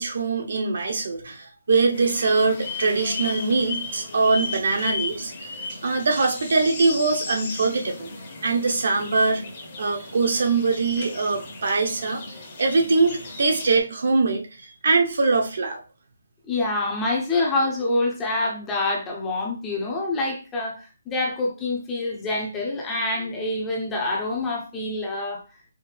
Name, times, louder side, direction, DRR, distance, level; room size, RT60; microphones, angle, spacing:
voice 1, 0.0-5.3 5.8-8.1 8.4-9.4 9.8-12.2 12.6-15.8, right 3 dB, 60° right, 1.0 m, -22 dB
sound 1, 1.9-13.8, left 3 dB, 30° left, 1.1 m, -35 dB
voice 2, 16.5-25.4, left 2 dB, 10° left, 0.8 m, -26 dB
4.8 x 2.7 x 3.3 m
hypercardioid pair, 170°, 0 cm